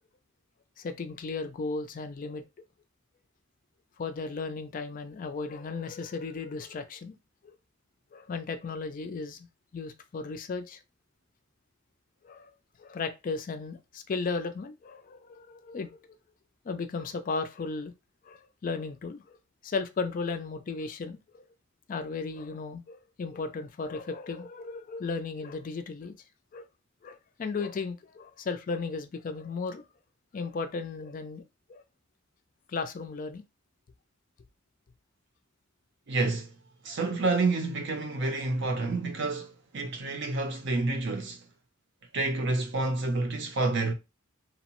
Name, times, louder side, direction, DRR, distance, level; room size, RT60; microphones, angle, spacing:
voice 1, 0.8-2.4 4.0-7.2 7.4-7.5 8.1-9.5 9.7-10.8 12.2-12.5 12.8-15.9 16.6-17.9 18.2-19.4 19.6-21.4 21.9-26.1 26.5-26.7 27.0-29.9 30.3-31.4 31.7-31.8 32.7-33.4, left 4 dB, 45° left, 0.4 m, -35 dB
voice 2, 36.1-36.6 36.8-41.5 42.1-43.9, right 3 dB, 60° right, 0.6 m, -29 dB
2.8 x 2.0 x 2.9 m
head